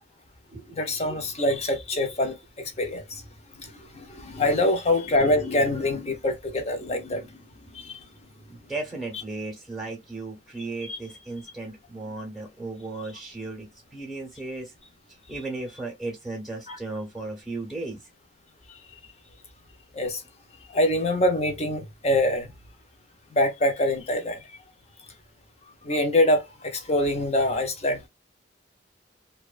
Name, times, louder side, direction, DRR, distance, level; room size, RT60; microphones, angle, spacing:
voice 1, 0.7-3.2 3.7-7.4 7.7-8.0 10.8-11.0 16.7-16.8 19.9-20.2 20.7-22.5 23.3-24.4 25.8-28.1, left 1 dB, 35° left, 0.7 m, -25 dB
voice 2, 8.5-14.7 15.3-18.0, right 2 dB, ahead, 0.8 m, -35 dB
2.8 x 2.2 x 2.4 m
head